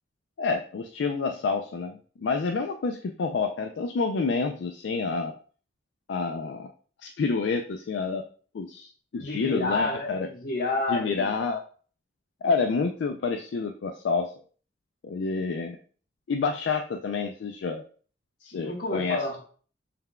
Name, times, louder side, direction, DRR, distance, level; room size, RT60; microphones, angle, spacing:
voice 1, 0.4-5.3 6.1-6.7 7.0-8.2 8.5-10.3 10.9-11.6 12.4-14.3 15.0-15.8 16.3-17.8 18.4-19.2, left 4 dB, 70° left, 5 dB, 0.4 m, -28 dB
voice 2, 9.2-11.3 18.5-19.4, left 2 dB, 50° left, 0 dB, 1.1 m, -29 dB
5.6 x 3.4 x 2.2 m, 0.42 s
head